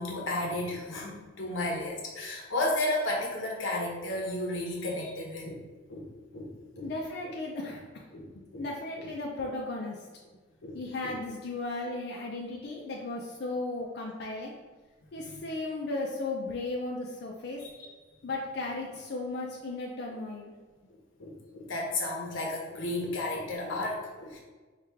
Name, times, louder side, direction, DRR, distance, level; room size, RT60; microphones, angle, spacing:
voice 1, 0.0-5.6 5.9-6.9 7.2-7.3 8.1-8.7 9.0-9.1 9.4-9.5 10.6-11.2 15.3-15.4 21.2-24.4, left 1 dB, 85° left, -1 dB, 0.9 m, -33 dB
voice 2, 6.8-8.0 8.6-10.0 10.7-14.5 15.1-17.6 18.2-20.5, left 2 dB, 55° left, -2 dB, 0.5 m, -35 dB
4.6 x 2.4 x 3.4 m, 1.3 s
head